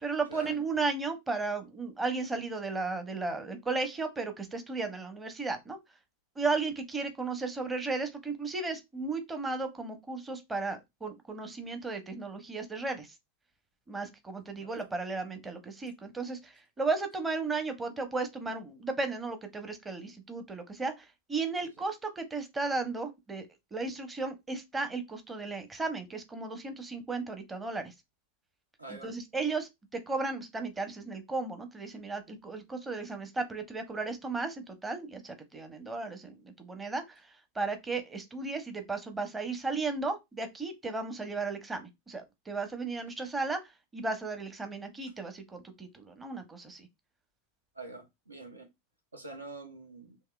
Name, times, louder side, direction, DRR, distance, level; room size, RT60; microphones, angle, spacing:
voice 1, 0.0-5.8 6.4-13.1 13.9-27.9 28.9-46.9, right 3 dB, 10° right, 0.8 m, -35 dB
voice 2, 28.8-29.1 47.7-48.7 49.1-50.2, right 3 dB, 80° right, 0.8 m, -45 dB
3.7 x 2.7 x 2.3 m
figure-of-eight pair, 90°, 0 cm